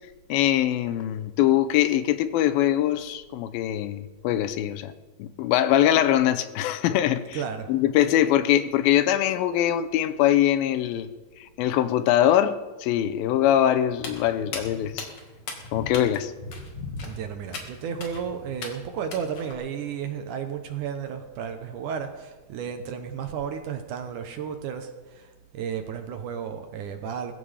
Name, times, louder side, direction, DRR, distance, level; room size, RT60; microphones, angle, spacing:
voice 1, 0.3-4.9 5.2-7.4 7.7-11.1 11.4-15.1 15.7-16.3, left 11 dB, 85° left, 2.5 m, -22 dB
voice 2, 7.3-7.7 17.0-27.3, right 7 dB, 70° right, 2.2 m, -33 dB
Walk footsteps, 13.9-19.5, left 3 dB, 50° left, 2.8 m, -38 dB
20.5 x 15.0 x 3.5 m
omnidirectional pair, 4.3 m